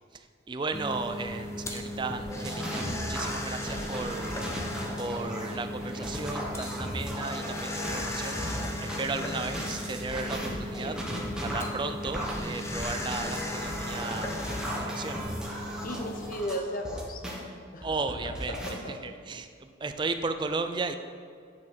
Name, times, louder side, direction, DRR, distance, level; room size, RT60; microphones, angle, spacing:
voice 1, 0.1-4.4 5.0-8.4 8.8-11.0 11.4-14.3 14.8-15.2 17.8-20.9, right 3 dB, 25° right, 8 dB, 0.4 m, -35 dB
sound 1, 0.7-16.3, left 1 dB, 15° left, 0.7 m, -36 dB
sound 2, 2.1-9.0 9.5-17.4 17.8-18.7, equal, 5° right, 1.1 m, -36 dB
voice 2, 15.8-19.2, equal, 45° left, 4 dB, 0.7 m, -37 dB
9.1 x 5.6 x 4.5 m, 2.2 s
head